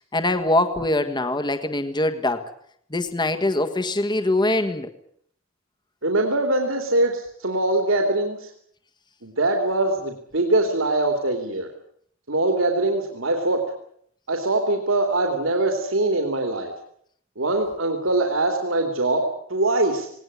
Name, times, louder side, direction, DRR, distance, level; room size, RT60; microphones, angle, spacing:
voice 1, 0.0-2.5 2.9-4.9, left 2 dB, 20° left, 9 dB, 1.5 m, -23 dB
voice 2, 6.0-8.5 9.2-11.7 12.3-13.6 14.3-16.7 17.4-19.2 19.5-20.1, right 2 dB, 70° right, 3 dB, 3.0 m, -22 dB
19.5 x 19.0 x 9.8 m, 0.67 s
head